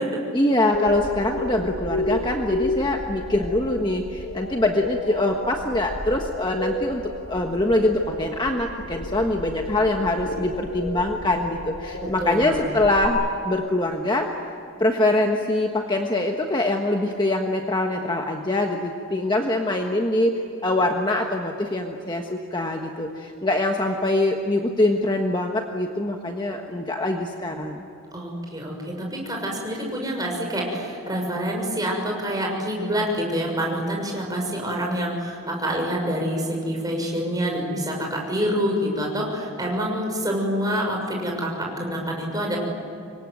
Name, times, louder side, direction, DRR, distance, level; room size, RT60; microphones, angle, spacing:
voice 1, 0.3-7.0 7.3-14.3 14.8-27.8, left 1 dB, 20° left, 2 dB, 1.4 m, -24 dB
sound 1, 0.7-13.1, left 2 dB, 60° left, 3.1 m, -31 dB
voice 2, 12.0-12.6 28.1-42.6, equal, 15° right, 0 dB, 6.4 m, -27 dB
27.0 x 23.5 x 9.3 m, 2.6 s
head